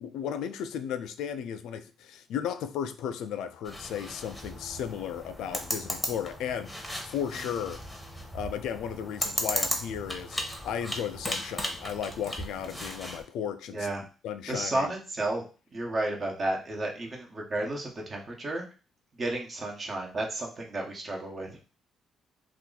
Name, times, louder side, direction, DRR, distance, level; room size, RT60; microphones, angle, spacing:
voice 1, 0.0-6.7 7.1-7.8 8.3-10.4 10.6-13.9 14.2-14.9, left 8 dB, 85° left, 10 dB, 0.3 m, -35 dB
sound 1, 3.6-13.2, equal, 5° left, 0.9 m, -36 dB
voice 2, 13.7-14.0 14.5-15.4 15.7-18.6 19.2-21.6, right 2 dB, 40° right, 1 dB, 0.9 m, -32 dB
2.8 x 2.5 x 3.8 m, 0.35 s
cardioid pair, 90°, 0 cm